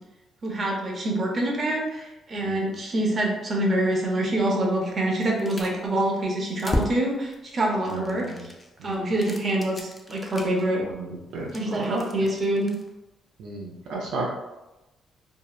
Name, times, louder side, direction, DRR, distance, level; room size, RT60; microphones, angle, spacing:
voice 1, 0.4-8.5 8.8-10.8 11.5-12.7, right 1 dB, 40° right, -1 dB, 0.6 m, -26 dB
sound 1, 4.3-4.4 5.1-6.0 6.3-7.4 7.8-10.7 11.3-12.9, left 1 dB, 20° left, 0.4 m, -34 dB
voice 2, 7.9-8.5 8.8-9.1 10.9-12.0 13.4-14.3, right 3 dB, 85° right, -3 dB, 0.4 m, -33 dB
2.7 x 2.0 x 2.3 m, 1.0 s
cardioid pair, 90°, 0 cm